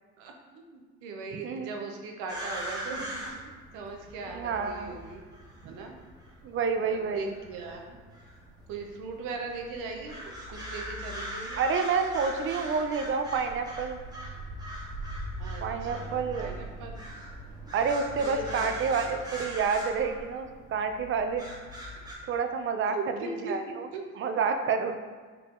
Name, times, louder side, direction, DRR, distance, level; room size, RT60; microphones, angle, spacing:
voice 1, 0.2-3.2 3.4-5.2 5.6-5.9 6.8-8.0 8.7-11.6 15.4-17.0 18.2-18.7 19.0-19.1 22.9-23.6 23.9-24.0, right 4 dB, 85° right, 2 dB, 0.7 m, -39 dB
voice 2, 1.3-1.7 4.3-5.0 5.6-5.7 6.4-7.3 11.6-14.0 15.6-16.6 17.7-21.5 22.3-23.0 23.2-23.9 24.2-25.0, right 5 dB, 45° right, 7 dB, 0.4 m, -29 dB
sound 1, 2.3-22.2, right 1 dB, 15° right, 1.1 m, -41 dB
4.7 x 3.7 x 2.4 m, 1.5 s
supercardioid pair, 90°, 30 cm